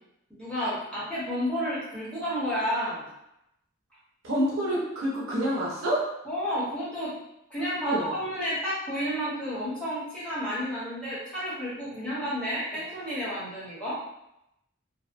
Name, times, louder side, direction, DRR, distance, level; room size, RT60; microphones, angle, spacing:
voice 1, 0.3-3.1 6.2-7.1 7.5-14.0, equal, 5° left, -11 dB, 1.0 m, -31 dB
voice 2, 4.2-6.1 7.8-8.1, equal, 85° right, -5 dB, 0.6 m, -27 dB
2.7 x 2.0 x 2.5 m, 0.84 s
head